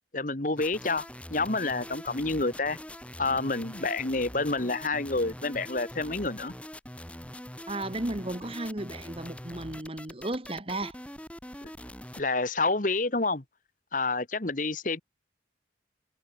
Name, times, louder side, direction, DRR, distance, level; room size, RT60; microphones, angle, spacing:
voice 1, 0.1-2.8 3.2-6.5 12.2-13.4 13.9-15.0, left 3 dB, 45° left, 1.5 m, -28 dB
sound 1, 0.6-12.3, left 1 dB, 5° left, 2.9 m, -43 dB
voice 2, 7.7-11.0, right 1 dB, 30° right, 1.7 m, -34 dB
head